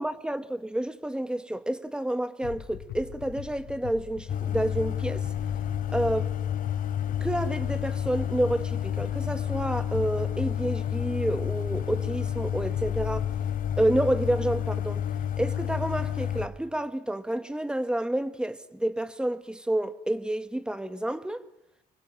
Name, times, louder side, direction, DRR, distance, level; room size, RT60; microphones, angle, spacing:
voice 1, 0.0-5.3 5.9-6.3 7.2-13.3 13.8-15.0 15.4-21.5, right 1 dB, 5° right, 1.7 m, -29 dB
sound 1, 2.4-13.7, left 11 dB, 85° left, 4.5 m, -42 dB
sound 2, 4.3-16.5, left 9 dB, 55° left, 3.5 m, -30 dB
29.5 x 24.5 x 7.4 m
cardioid pair, 110°, 17 cm